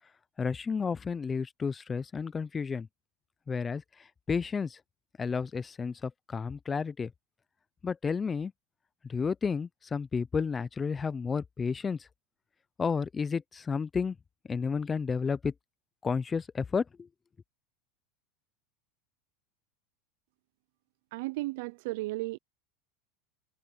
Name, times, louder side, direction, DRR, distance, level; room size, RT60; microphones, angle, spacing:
voice 1, 0.4-2.9 3.5-3.8 4.3-4.8 5.2-7.1 7.8-8.5 9.1-12.0 12.8-14.2 14.5-15.5 16.0-17.1, left 5 dB, 20° left, 0.5 m, -31 dB
voice 2, 21.1-22.4, right 20 dB, 70° right, 0.4 m, -34 dB
supercardioid pair, 135°, 0 cm